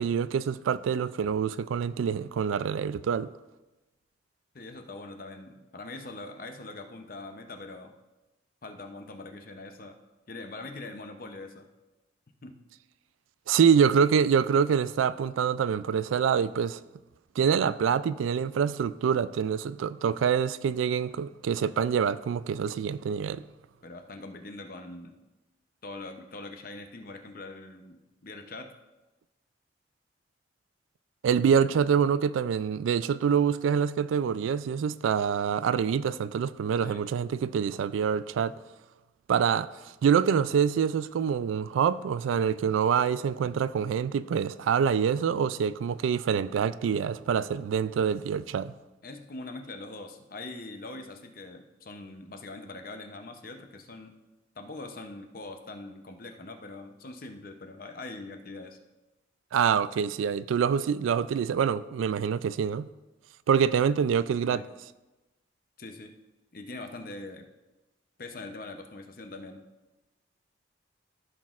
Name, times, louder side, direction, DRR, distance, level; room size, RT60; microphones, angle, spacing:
voice 1, 0.0-3.3 13.5-16.8 17.4-23.4 31.2-38.6 39.3-39.7 40.0-48.7 59.5-62.9 63.5-64.6, right 7 dB, 90° right, 0.3 m, -26 dB
voice 2, 4.5-7.9 8.6-10.0 10.3-11.7 12.4-12.6 23.8-25.1 25.8-28.7 36.8-37.0 49.0-54.2 54.5-58.8 64.5-64.7 65.8-66.1 66.5-67.5 68.2-69.6, left 2 dB, 45° left, 0.7 m, -42 dB
14.5 x 6.1 x 2.5 m
head